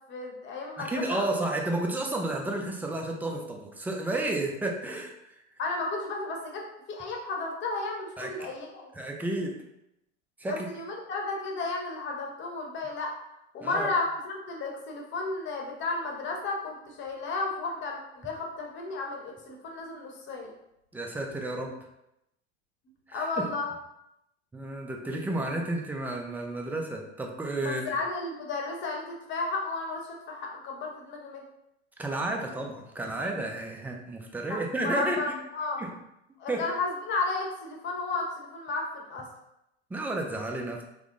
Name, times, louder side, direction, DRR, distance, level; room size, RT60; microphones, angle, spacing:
voice 1, 0.1-1.3 5.6-8.9 10.5-13.2 13.5-20.5 23.1-23.7 27.6-31.4 34.5-35.8 36.4-39.3, left 3 dB, 35° left, 1 dB, 0.9 m, -33 dB
voice 2, 0.8-5.4 8.2-8.5 8.9-9.5 10.4-10.7 13.6-13.9 20.9-21.8 23.1-23.5 24.5-27.9 32.0-35.2 35.8-35.9 36.5-36.6 39.9-40.8, right 2 dB, 5° right, 1 dB, 0.3 m, -32 dB
3.5 x 2.0 x 3.6 m, 0.84 s
hypercardioid pair, 90°, 34 cm